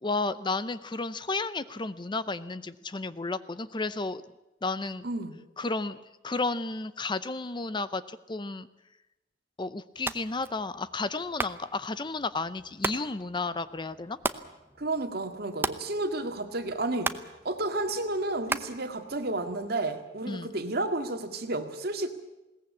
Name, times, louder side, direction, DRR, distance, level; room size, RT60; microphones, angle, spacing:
voice 1, 0.0-4.2 4.6-5.0 5.6-8.7 9.6-14.2 20.3-20.6, left 3 dB, 25° left, 15 dB, 0.7 m, -32 dB
voice 2, 5.0-5.4 14.8-17.1 17.4-22.1, right 2 dB, 60° right, 6 dB, 2.0 m, -31 dB
sound 1, 9.9-19.7, right 2 dB, 15° right, 0.8 m, -38 dB
21.0 x 18.0 x 8.5 m, 0.98 s
head